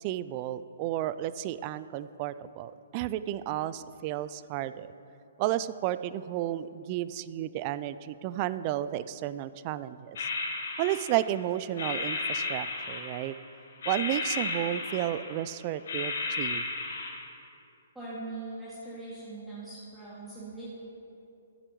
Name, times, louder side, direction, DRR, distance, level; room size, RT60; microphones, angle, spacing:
voice 1, 0.0-4.9 5.4-10.3 10.8-13.3 13.9-16.7, right 13 dB, 35° right, 15 dB, 0.3 m, -32 dB
sound 1, 10.2-11.4 11.8-13.4 13.8-15.5 15.9-17.2, left 3 dB, 65° left, 1.7 m, -34 dB
voice 2, 17.9-20.7, right 2 dB, 5° right, -11 dB, 2.1 m, -41 dB
14.0 x 9.8 x 3.1 m, 2.7 s
hypercardioid pair, 135°, 0 cm